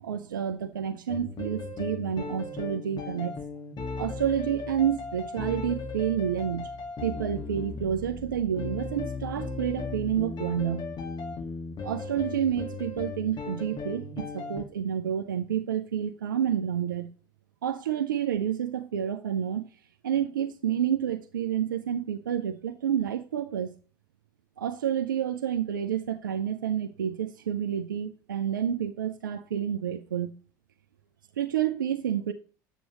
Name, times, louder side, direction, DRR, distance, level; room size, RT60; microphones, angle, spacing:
voice 1, 0.0-3.3 4.0-6.7 7.0-10.8 11.8-17.1 17.6-19.7 20.0-23.7 24.6-30.3 31.4-32.3, right 9 dB, 90° right, 0.5 m, -29 dB
sound 1, 1.1-14.6, left 4 dB, 45° left, 2.1 m, -36 dB
8.0 x 6.1 x 3.0 m
hypercardioid pair, 65°, 10 cm